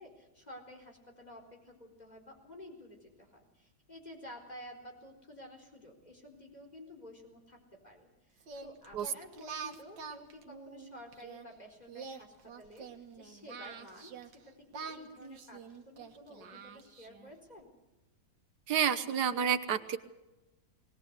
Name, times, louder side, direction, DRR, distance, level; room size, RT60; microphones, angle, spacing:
voice 1, 0.0-17.7, left 1 dB, 20° left, 2 dB, 4.4 m, -52 dB
Singing, 8.4-11.4 11.9-14.4 14.7-17.3, right 5 dB, 85° right, 2.1 m, -46 dB
voice 2, 18.7-20.0, right 8 dB, 65° right, 10 dB, 1.6 m, -29 dB
20.5 x 19.5 x 8.1 m, 1.0 s
omnidirectional pair, 1.9 m